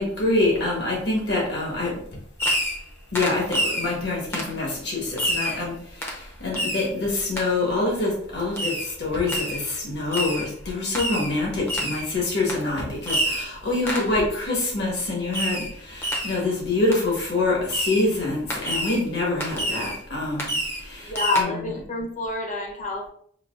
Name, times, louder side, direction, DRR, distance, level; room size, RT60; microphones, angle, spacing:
voice 1, 0.0-2.0 3.1-21.8, left 2 dB, 65° left, -2 dB, 1.5 m, -26 dB
Fireworks, 2.4-2.9 3.1-3.9 4.3-4.5 5.2-5.6 6.0-6.2 6.5-6.9 7.4-7.5 8.6-8.9 9.3-9.6 10.1-10.5 10.9-11.3 11.7-12.1 12.5-12.6 13.1-13.5 13.9-14.1 15.3-15.7 16.0-16.4 16.9-17.0 17.7-18.1 18.5-19.0 19.4-20.0 20.4-20.8 21.1-21.4, equal, 15° left, 0.7 m, -27 dB
voice 2, 21.0-23.1, left 3 dB, 45° left, 1 dB, 0.9 m, -27 dB
5.7 x 2.8 x 2.6 m, 0.62 s
head